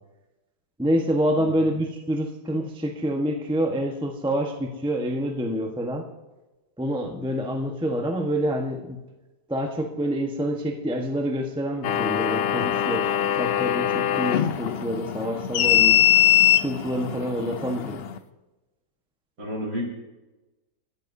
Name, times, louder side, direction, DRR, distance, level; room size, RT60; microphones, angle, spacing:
voice 1, 0.8-6.1 6.8-9.0 9.5-13.1 13.4-16.1 16.5-18.0, equal, 5° right, 2 dB, 0.9 m, -27 dB
voice 2, 1.3-1.7 19.4-19.8, equal, 60° right, -3 dB, 5.0 m, -32 dB
sound 1, 11.8-18.2, left 11 dB, 85° left, 0.5 m, -22 dB
29.5 x 13.5 x 2.7 m, 1.1 s
omnidirectional pair, 1.8 m